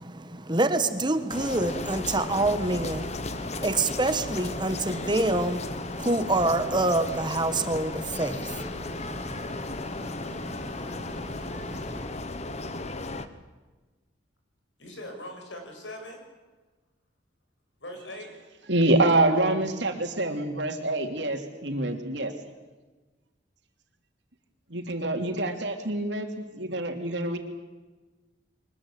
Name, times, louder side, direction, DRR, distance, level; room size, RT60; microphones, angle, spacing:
voice 1, 0.0-12.1, right 2 dB, 25° right, 10 dB, 1.3 m, -28 dB
sound 1, 1.3-13.3, left 2 dB, 35° left, 1.2 m, -35 dB
voice 2, 14.8-16.2 17.8-18.3, left 1 dB, 80° left, 3 dB, 7.0 m, -40 dB
voice 3, 18.7-22.3 24.7-27.4, right 2 dB, 70° right, 5 dB, 3.0 m, -26 dB
24.0 x 21.0 x 8.6 m, 1.2 s
head